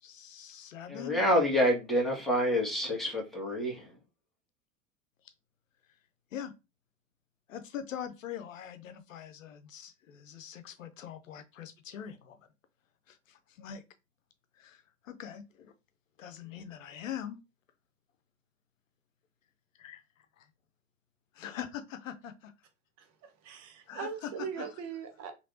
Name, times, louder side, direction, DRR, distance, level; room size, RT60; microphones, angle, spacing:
voice 1, 0.0-1.3 6.3-6.5 7.5-12.4 13.1-13.8 14.6-15.7 16.2-17.4 19.8-20.0 21.3-22.5 23.9-24.7, left 9 dB, 80° left, 0.6 m, -43 dB
voice 2, 0.9-4.0, equal, ahead, 1.6 m, -28 dB
voice 3, 23.0-25.3, right 6 dB, 45° right, 0.9 m, -40 dB
3.2 x 3.0 x 2.6 m
hypercardioid pair, 80°, 39 cm